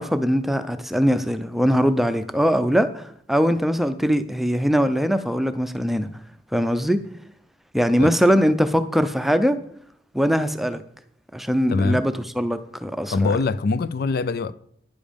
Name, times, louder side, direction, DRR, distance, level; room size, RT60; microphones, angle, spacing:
voice 1, 0.0-6.1 6.5-7.0 7.7-9.6 10.1-10.8 11.3-13.3, equal, ahead, 0.5 m, -21 dB
voice 2, 11.7-12.0 13.1-14.5, left 3 dB, 55° left, 0.4 m, -23 dB
10.5 x 7.2 x 5.2 m
head